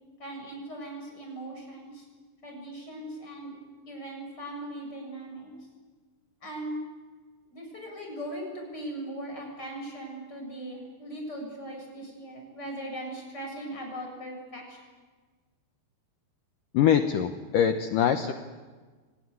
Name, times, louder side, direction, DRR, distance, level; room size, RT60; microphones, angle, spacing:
voice 1, 0.2-2.1 2.4-3.6 3.9-5.5 6.4-6.8 7.5-14.8, right 1 dB, 20° left, 1 dB, 7.8 m, -39 dB
voice 2, 16.7-18.3, left 9 dB, 80° left, 7 dB, 1.9 m, -23 dB
25.0 x 20.0 x 9.6 m, 1.4 s
omnidirectional pair, 5.1 m